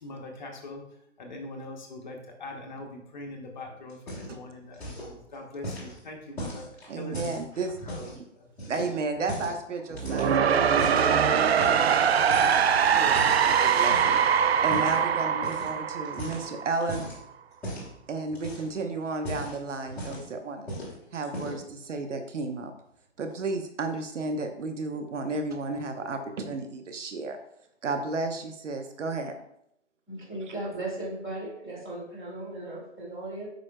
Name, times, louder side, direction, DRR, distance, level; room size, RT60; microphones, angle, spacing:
voice 1, 0.0-0.8 1.2-6.7 6.9-7.3 7.8-8.7 10.0-10.1, left 2 dB, 40° left, 1 dB, 0.9 m, -42 dB
sound 1, 3.9-4.5 4.7-5.1 5.6-8.2 8.6-9.6 10.0-11.1 11.6-12.0 12.3-14.2 14.7-15.0 15.4-15.7 16.0-17.2 17.6-17.9 18.3-18.8 19.1-20.3 20.7-20.9 21.2-21.7, equal, 5° left, 1.1 m, -38 dB
voice 2, 6.9-7.7 8.7-11.9 12.5-12.6 12.9-17.1 18.1-20.7 21.1-22.7 23.2-27.4 27.8-29.3 30.4-30.5, right 3 dB, 75° right, 6 dB, 1.0 m, -33 dB
sound 2, 9.9-16.9, right 7 dB, 60° right, 0.5 m, -23 dB
voice 3, 30.1-33.5, right 2 dB, 20° right, -7 dB, 2.3 m, -36 dB
7.8 x 5.4 x 2.2 m, 0.75 s
hypercardioid pair, 160°, 37 cm